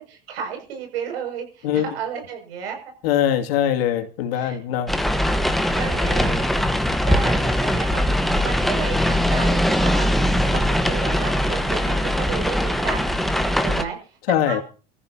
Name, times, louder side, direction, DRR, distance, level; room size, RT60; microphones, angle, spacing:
voice 1, 0.0-2.8 4.3-4.6 5.7-6.4 7.0-8.1 8.4-10.1 10.5-13.2 13.6-14.2 14.4-14.6, right 7 dB, 90° right, 6.7 m, -32 dB
voice 2, 3.0-4.9 14.3-14.6, left 10 dB, 80° left, 2.5 m, -22 dB
sound 1, 4.9-13.8, equal, ahead, 1.3 m, -21 dB
28.5 x 14.0 x 2.9 m
supercardioid pair, 115°, 30 cm